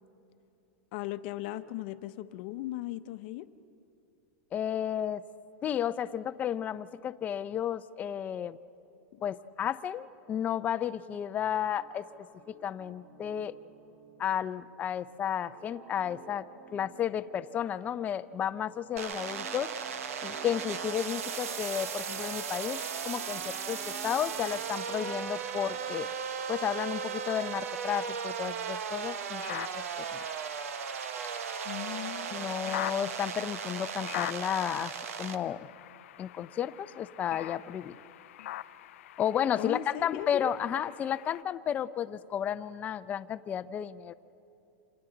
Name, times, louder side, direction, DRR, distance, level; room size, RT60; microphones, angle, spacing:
voice 1, 0.9-3.5 9.1-9.2 31.6-32.5 39.6-40.3, left 15 dB, 50° left, 11 dB, 0.8 m, -38 dB
voice 2, 4.5-5.2 5.6-8.6 9.2-12.1 12.5-13.5 14.2-16.5 16.7-19.7 20.2-26.1 26.5-30.2 32.3-34.9 35.2-35.7 36.2-38.0 39.2-44.1, left 9 dB, 20° left, 14 dB, 0.5 m, -33 dB
sound 1, 11.8-26.3, right 4 dB, 30° right, 1.6 m, -55 dB
sound 2, 19.0-35.4, right 7 dB, 85° right, 1.2 m, -36 dB
sound 3, 29.3-41.4, left 14 dB, 70° left, 0.4 m, -44 dB
28.0 x 27.0 x 3.9 m, 2.9 s
supercardioid pair, 155°, 7 cm